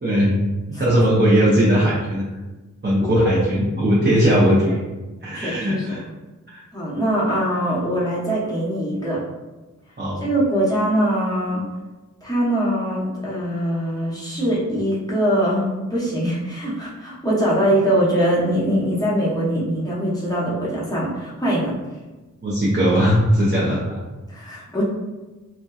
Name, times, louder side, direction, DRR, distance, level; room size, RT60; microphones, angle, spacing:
voice 1, 0.0-0.3 0.8-2.2 2.8-4.8 5.2-6.1 6.5-6.6 10.0-10.2 22.4-24.0, equal, 35° right, -7 dB, 0.6 m, -18 dB
voice 2, 5.3-6.0 6.7-9.2 10.2-11.6 12.2-21.7 24.3-24.8, right 1 dB, 10° left, -6 dB, 0.8 m, -22 dB
2.6 x 2.1 x 2.3 m, 1.2 s
wide cardioid pair, 60°, 31 cm